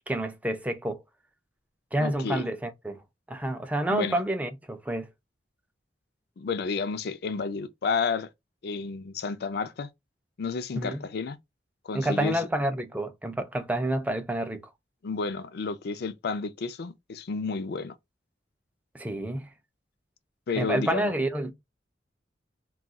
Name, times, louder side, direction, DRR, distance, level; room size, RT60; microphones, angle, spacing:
voice 1, 0.1-1.0 1.9-3.0 3.3-5.1 10.7-11.1 11.9-14.6 18.9-19.5 20.6-21.5, right 1 dB, 10° right, 0.4 m, -29 dB
voice 2, 2.0-2.4 3.9-4.2 6.4-8.3 8.6-9.9 10.4-11.4 11.8-12.4 15.0-17.9 20.5-21.1, left 4 dB, 60° left, 0.4 m, -31 dB
2.3 x 2.3 x 3.8 m
head